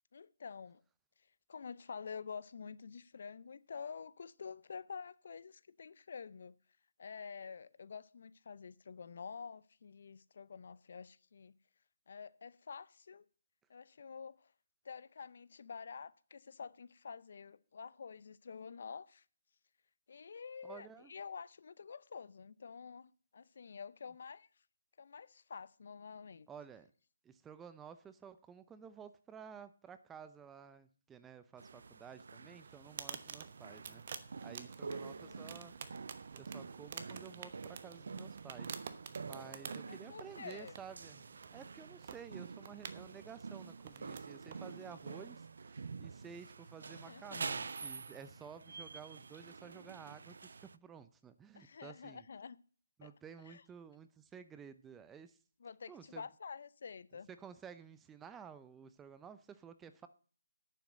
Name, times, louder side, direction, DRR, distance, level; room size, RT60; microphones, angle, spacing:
voice 1, 0.1-0.8 1.5-6.6 7.0-11.5 12.1-13.3 13.7-14.5 14.8-19.2 20.1-24.5 25.0-26.5 35.0-35.6 39.9-40.8 47.0-47.6 51.5-52.6 53.0-53.1 53.5-53.6 55.6-57.3, left 6 dB, 55° left, 0.6 m, -48 dB
voice 2, 20.6-21.1 26.5-26.9 27.2-35.7 36.3-38.8 39.2-52.3 53.0-55.4 55.9-56.2 57.3-60.1, right 7 dB, 10° right, 0.6 m, -53 dB
sound 1, 31.6-50.8, right 4 dB, 65° right, 0.4 m, -48 dB
sound 2, 32.6-45.3, right 7 dB, 45° right, 1.0 m, -51 dB
9.2 x 7.2 x 7.7 m
figure-of-eight pair, 150°, 0 cm